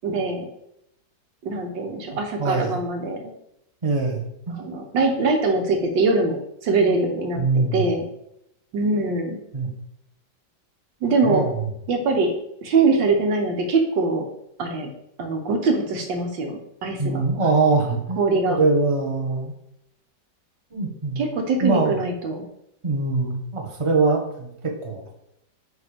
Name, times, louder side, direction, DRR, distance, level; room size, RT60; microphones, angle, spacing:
voice 1, 0.0-0.5 1.4-3.3 4.5-6.4 6.6-8.1 8.7-9.4 11.0-11.5 11.9-12.3 12.6-14.3 14.6-14.9 15.2-17.2 18.2-18.6 21.2-22.5, right 3 dB, 90° right, 4 dB, 1.8 m, -23 dB
voice 2, 2.4-2.8 3.8-4.6 7.4-7.8 9.5-9.7 11.2-11.6 17.0-18.2 18.6-19.5 20.7-21.2 21.6-22.0 22.8-24.5 24.8-25.0, right 3 dB, 20° right, 1 dB, 1.1 m, -22 dB
9.1 x 3.4 x 5.1 m, 0.79 s
omnidirectional pair, 1.9 m